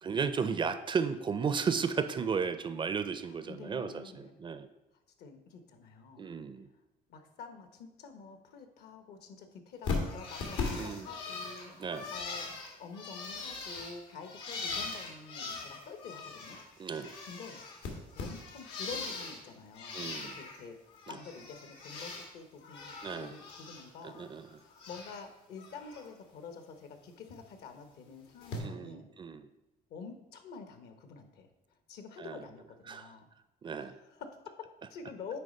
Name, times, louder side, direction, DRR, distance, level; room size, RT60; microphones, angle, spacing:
voice 1, 0.0-4.7 6.2-6.7 10.8-11.1 11.8-12.1 16.8-17.2 19.9-20.3 21.1-21.2 23.0-23.3 24.1-24.4 28.6-29.4 32.2-32.4 32.9-33.1 33.6-33.9, right 6 dB, 30° right, 11 dB, 0.4 m, -34 dB
voice 2, 3.3-4.3 5.2-6.2 7.1-12.5 12.8-16.6 17.0-17.6 18.1-20.8 21.1-24.2 24.6-29.1 29.9-31.5 31.9-33.3 33.8-35.4, left 5 dB, 70° left, 7 dB, 1.1 m, -48 dB
Bird, 9.8-16.6 16.9-19.4 19.7-20.6 20.9-22.3 22.6-23.8 24.1-25.2 25.6-26.0 27.3-27.4 28.4-28.6, left 4 dB, 90° left, 1.7 m, -40 dB
9.3 x 3.2 x 5.3 m, 0.95 s
cardioid pair, 110°, 17 cm